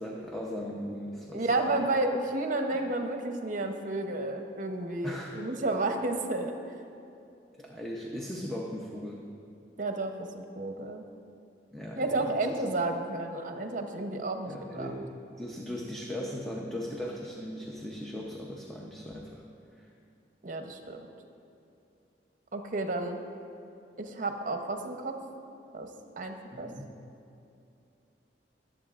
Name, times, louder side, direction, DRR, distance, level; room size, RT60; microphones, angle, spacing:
voice 1, 0.0-1.9 2.7-2.8 5.0-5.4 7.6-9.3 11.7-12.2 12.5-12.6 14.5-19.4 19.8-19.9 26.5-26.8, equal, 5° left, -2 dB, 0.7 m, -38 dB
voice 2, 1.3-6.6 9.8-11.0 12.0-14.9 20.4-21.1 22.5-23.2 24.0-25.2 25.7-25.9 26.2-26.7, right 2 dB, 50° right, 5 dB, 0.8 m, -31 dB
22.0 x 7.9 x 2.5 m, 2.6 s
head